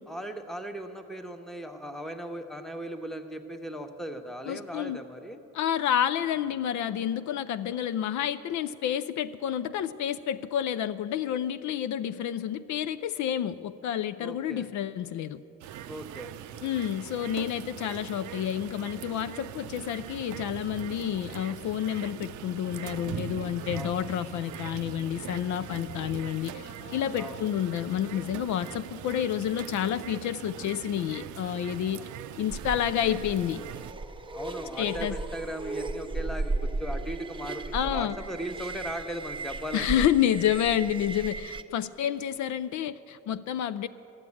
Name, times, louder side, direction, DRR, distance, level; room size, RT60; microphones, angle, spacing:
voice 1, 0.1-5.4 14.2-14.7 15.9-16.3 23.7-23.9 27.2-27.4 34.3-40.0, equal, ahead, 6 dB, 0.9 m, -38 dB
voice 2, 4.5-5.0 5.5-15.4 16.6-32.1 32.4-33.6 34.8-35.2 37.7-38.2 39.7-43.9, left 10 dB, 70° left, 13 dB, 0.5 m, -29 dB
sound 1, 15.6-33.9, right 11 dB, 80° right, 0.5 m, -41 dB
Brass instrument, 22.6-29.4 29.7-29.8, left 4 dB, 55° left, 1.1 m, -52 dB
sound 2, 32.5-41.6, right 3 dB, 15° right, 0.6 m, -35 dB
13.0 x 7.2 x 9.7 m, 2.8 s
cardioid pair, 90°, 30 cm